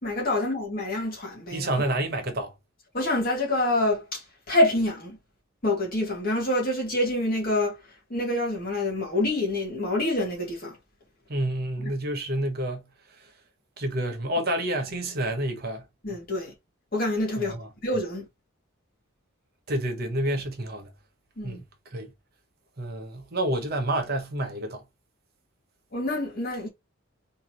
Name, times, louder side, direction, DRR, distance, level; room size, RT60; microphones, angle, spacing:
voice 1, 0.0-1.7 2.9-5.2 5.6-7.8 8.1-10.8 16.0-16.5 16.9-17.6 17.8-18.3 21.4-21.6 25.9-26.7, left 1 dB, 45° left, 2.0 m, -26 dB
voice 2, 1.5-2.5 11.3-12.9 13.8-15.8 17.4-17.7 19.7-20.9 21.4-22.1 22.8-24.8, right 1 dB, 45° right, 1.0 m, -29 dB
3.7 x 3.2 x 2.9 m
head